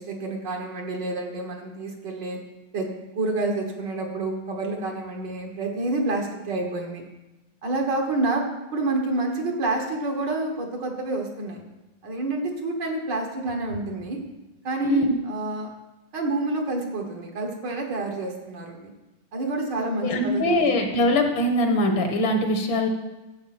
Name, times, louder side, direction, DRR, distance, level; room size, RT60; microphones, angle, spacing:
voice 1, 0.0-2.4 2.7-2.9 3.2-7.0 7.6-8.5 8.7-11.6 12.0-14.2 14.6-15.7 16.1-18.9 19.3-21.1, right 2 dB, 60° right, 1 dB, 2.1 m, -28 dB
voice 2, 14.8-15.2 20.0-22.9, left 1 dB, 70° left, 4 dB, 2.1 m, -22 dB
12.5 x 8.3 x 4.3 m, 1.1 s
omnidirectional pair, 2.3 m